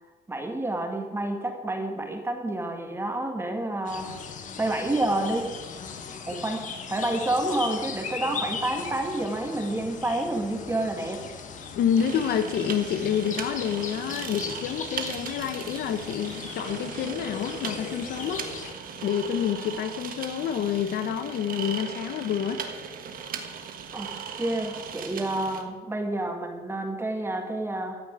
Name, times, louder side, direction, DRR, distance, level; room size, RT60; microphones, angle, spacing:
voice 1, 0.3-4.1 4.6-5.5 6.3-11.2 23.9-24.1 24.3-28.0, right 1 dB, 15° right, 2.0 m, -29 dB
sound 1, 3.9-18.7, left 6 dB, 50° left, 1.8 m, -38 dB
voice 2, 11.7-18.5 19.0-22.7, left 8 dB, 70° left, 1.1 m, -28 dB
sound 2, 12.0-25.6, right 7 dB, 55° right, 1.6 m, -38 dB
15.0 x 5.8 x 9.3 m
cardioid pair, 110°, 17 cm